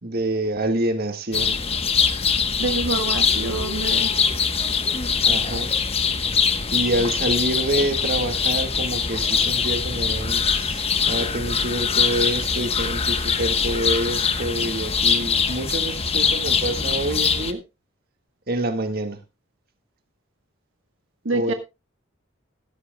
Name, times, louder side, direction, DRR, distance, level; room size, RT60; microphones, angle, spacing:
voice 1, 0.0-1.6 5.3-5.7 6.7-17.6 18.5-19.2 21.3-21.5, right 1 dB, 50° right, 1.8 m, -27 dB
sound 1, 1.3-17.5, left 6 dB, 30° left, 1.1 m, -23 dB
voice 2, 2.6-4.1 21.2-21.5, right 3 dB, 75° right, 1.3 m, -26 dB
15.0 x 13.5 x 2.3 m
head